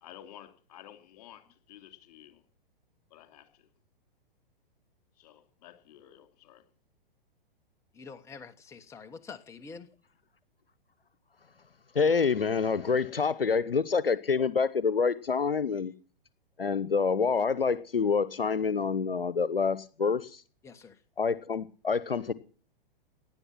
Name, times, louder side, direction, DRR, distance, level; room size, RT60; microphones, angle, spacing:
voice 1, 0.0-2.4 3.1-3.7 5.2-6.6, left 12 dB, 45° left, 2.9 m, -52 dB
voice 2, 7.9-9.9 20.6-21.0, left 5 dB, 10° left, 1.2 m, -46 dB
voice 3, 11.9-15.9 16.6-20.4 21.2-22.3, left 5 dB, 75° left, 1.0 m, -27 dB
18.0 x 11.0 x 6.0 m
figure-of-eight pair, 115°, 29 cm